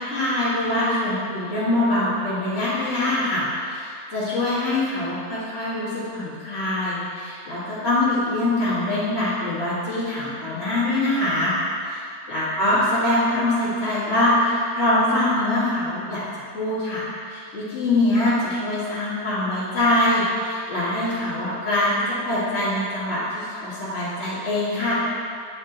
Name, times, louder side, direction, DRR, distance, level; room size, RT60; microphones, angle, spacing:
voice 1, 0.0-11.5 11.8-11.9 12.3-16.2 16.5-25.0, left 1 dB, 40° left, -13 dB, 1.6 m, -23 dB
9.5 x 3.6 x 3.8 m, 2.4 s
omnidirectional pair, 1.8 m